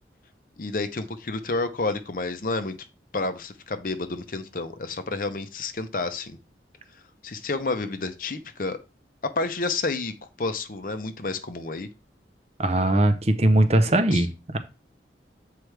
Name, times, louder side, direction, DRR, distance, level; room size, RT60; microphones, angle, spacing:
voice 1, 0.6-2.8 3.1-6.4 7.2-8.8 9.2-11.9 14.1-14.3, left 3 dB, 50° left, 9 dB, 0.7 m, -30 dB
voice 2, 12.6-14.6, right 1 dB, 35° right, 9 dB, 0.7 m, -20 dB
7.7 x 4.6 x 3.3 m, 0.30 s
head